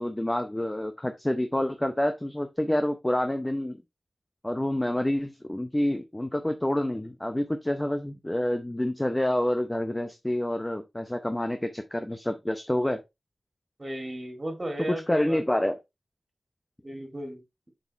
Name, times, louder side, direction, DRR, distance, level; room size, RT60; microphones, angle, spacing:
voice 1, 0.0-3.8 4.4-13.0 15.1-15.8, left 1 dB, 15° left, 0.8 m, -28 dB
voice 2, 13.8-15.4 16.8-17.4, right 1 dB, 25° right, 2.9 m, -35 dB
6.4 x 5.5 x 3.3 m
wide cardioid pair, 80°, 0 cm